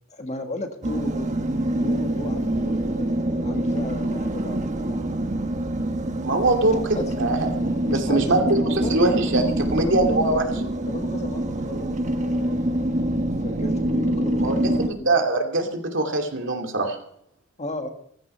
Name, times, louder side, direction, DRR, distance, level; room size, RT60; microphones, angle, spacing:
voice 1, 0.1-1.3 1.7-5.0 6.9-7.1 7.8-8.5 8.8-9.2 9.8-10.0 10.4-12.6 13.4-15.2 17.6-17.9, left 2 dB, 35° left, 5 dB, 1.7 m, -35 dB
sound 1, 0.8-14.9, right 1 dB, 35° right, 1.3 m, -25 dB
voice 2, 6.2-10.4 14.4-17.0, right 2 dB, 60° right, 3 dB, 2.7 m, -23 dB
16.0 x 15.0 x 5.6 m, 0.69 s
head